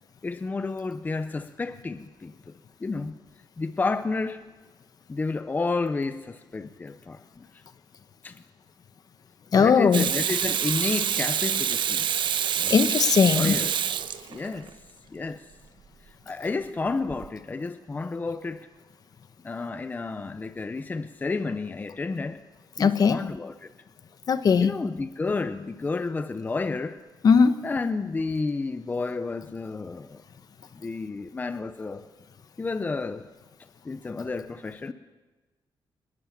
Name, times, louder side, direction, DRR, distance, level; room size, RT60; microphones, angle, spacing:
voice 1, 0.2-2.5 2.8-3.1 3.6-4.4 5.1-7.5 8.2-8.4 9.6-12.8 13.3-13.8 14.3-14.7 15.1-15.5 16.3-18.7 19.4-22.4 22.8-23.7 24.6-27.0 27.6-30.2 30.7-32.1 32.6-33.3 33.8-34.9, left 3 dB, 20° left, 0.7 m, -31 dB
voice 2, 9.5-10.1 12.7-13.5 22.8-23.2 24.3-24.7 27.2-27.6, left 6 dB, 45° left, 1.1 m, -19 dB
Water tap faucet / Sink (filling or washing), 9.9-14.7 17.1-17.3, right 9 dB, 65° right, 1.0 m, -26 dB
24.5 x 20.5 x 7.3 m
wide cardioid pair, 170°, 9 cm